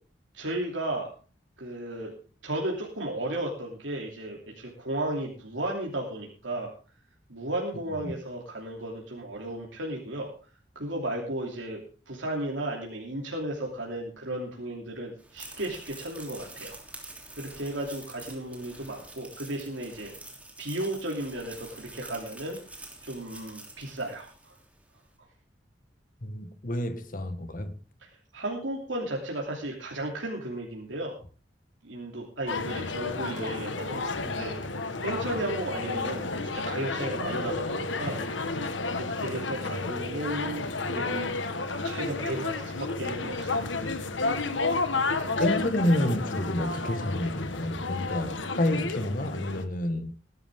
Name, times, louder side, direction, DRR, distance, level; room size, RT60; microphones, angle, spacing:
voice 1, 0.3-1.1 1.6-2.1 2.4-6.7 7.3-10.3 10.7-17.1 17.4-20.1 20.6-22.6 23.0-24.5 28.0-31.2 31.8-34.5 35.0-36.2 36.5-38.2 38.8-41.3 41.8-44.5, right 1 dB, 90° right, 2.9 m, -34 dB
sound 1, 15.2-24.7, right 2 dB, 10° right, 3.1 m, -47 dB
voice 2, 26.2-27.8 32.8-32.9 45.4-50.1, left 1 dB, 45° left, 1.6 m, -29 dB
sound 2, 32.5-49.6, left 3 dB, 80° left, 1.4 m, -31 dB
19.0 x 11.5 x 3.7 m
head